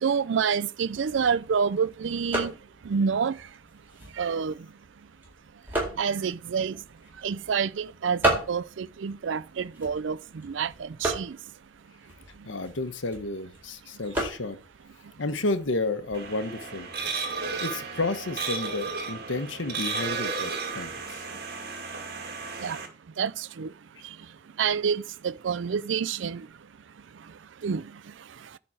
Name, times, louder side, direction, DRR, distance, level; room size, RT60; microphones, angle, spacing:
voice 1, 0.0-2.5 2.9-3.4 4.2-4.5 6.0-6.8 7.2-10.2 10.4-11.4 22.6-22.8 23.2-23.7 24.6-26.5 27.6-27.8, right 6 dB, 75° right, 0.4 m, -27 dB
sound 1, 0.8-16.3, right 1 dB, 10° right, 4.4 m, -36 dB
voice 2, 12.5-14.6 15.2-16.9 17.6-21.2, left 2 dB, 80° left, 1.2 m, -31 dB
sound 2, 16.1-22.9, right 4 dB, 50° right, 2.1 m, -34 dB
10.5 x 4.2 x 7.5 m
head